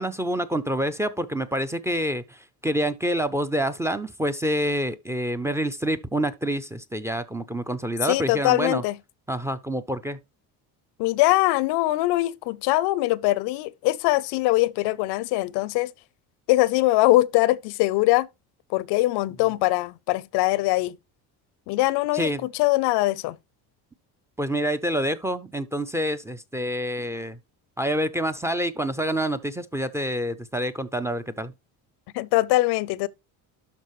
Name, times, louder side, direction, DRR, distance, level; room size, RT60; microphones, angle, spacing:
voice 1, 0.0-8.8 9.3-10.2 22.1-22.4 24.4-27.4 27.8-31.5, right 1 dB, 5° right, 0.4 m, -27 dB
voice 2, 8.0-9.0 11.0-15.9 16.5-18.3 18.7-21.0 21.7-23.4 32.1-33.1, left 18 dB, 80° left, 0.6 m, -22 dB
12.0 x 4.4 x 3.0 m
cardioid pair, 145°, 39 cm